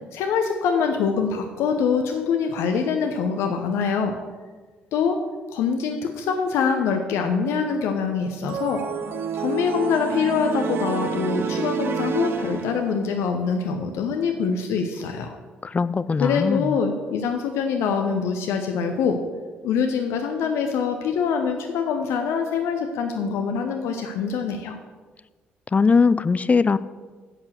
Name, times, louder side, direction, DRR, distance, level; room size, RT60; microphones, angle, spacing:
voice 1, 0.1-4.1 4.9-5.2 5.5-8.8 9.3-15.3 16.2-19.2 19.6-24.8, left 6 dB, 60° left, 5 dB, 0.9 m, -24 dB
sound 1, 8.5-13.1, right 6 dB, 50° right, 0.8 m, -29 dB
voice 2, 15.6-16.7 25.7-26.8, left 4 dB, 25° left, 15 dB, 0.5 m, -20 dB
11.0 x 7.2 x 6.4 m, 1.4 s
figure-of-eight pair, 45°, 5 cm